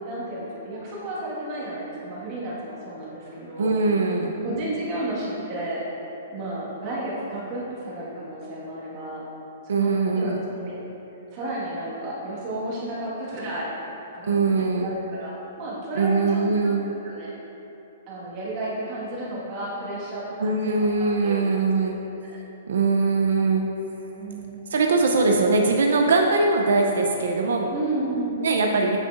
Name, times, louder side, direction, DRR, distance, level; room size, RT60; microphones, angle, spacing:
voice 1, 0.0-3.7 4.3-5.8 6.3-9.2 9.6-10.9 11.3-13.7 14.1-17.3 18.1-20.9 21.2-21.6 22.2-22.4 24.2-24.6 27.7-28.4, right 1 dB, 30° right, -7 dB, 1.5 m, -32 dB
voice 2, 3.6-4.3 9.7-10.4 14.3-14.9 16.0-16.9 20.4-22.0 22.7-23.6 24.7-27.7 28.4-29.0, right 3 dB, 85° right, 2 dB, 0.5 m, -21 dB
7.8 x 5.7 x 2.5 m, 3.0 s
hypercardioid pair, 165°, 0 cm